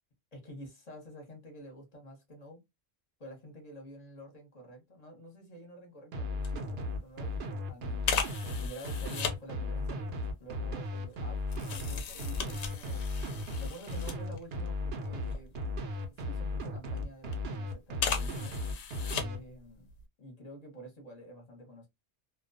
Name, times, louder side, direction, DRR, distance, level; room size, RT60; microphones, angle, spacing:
voice 1, 0.3-2.6 3.2-10.1 10.4-13.0 13.6-15.5 16.2-18.5 19.1-19.9 20.2-21.9, equal, 40° left, 0.9 m, -49 dB
sound 1, 6.1-19.4, left 2 dB, 65° right, 0.8 m, -35 dB
sound 2, 6.4-6.6 6.9-7.1 8.0-9.4 10.2-14.7 15.1-16.4 17.0-17.4 17.9-19.6 19.9-20.0, left 6 dB, 75° left, 0.9 m, -37 dB
2.3 x 2.2 x 2.5 m
omnidirectional pair, 1.2 m